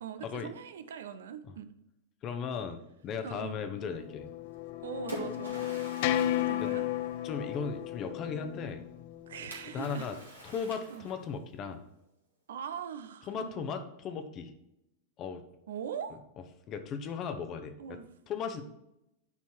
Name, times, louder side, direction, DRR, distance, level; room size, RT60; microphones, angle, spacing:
voice 1, 0.0-1.7 3.2-3.6 4.8-5.6 6.4-6.9 9.3-10.1 10.9-11.0 12.5-13.7 15.7-16.2 17.8-18.1, right 8 dB, 60° right, 11 dB, 0.6 m, -41 dB
voice 2, 2.2-4.3 6.6-6.7 7.2-8.8 9.7-10.1 10.4-11.8 13.3-14.5 15.2-15.4 16.7-18.0 18.3-18.6, left 6 dB, 35° left, 8 dB, 1.0 m, -36 dB
sound 1, 3.5-9.9, left 12 dB, 50° left, 0.4 m, -34 dB
Splash splatter, 4.5-7.7 9.5-11.4, right 1 dB, 80° right, 1.9 m, -45 dB
9.7 x 4.4 x 4.7 m, 0.85 s
figure-of-eight pair, 90°, 0 cm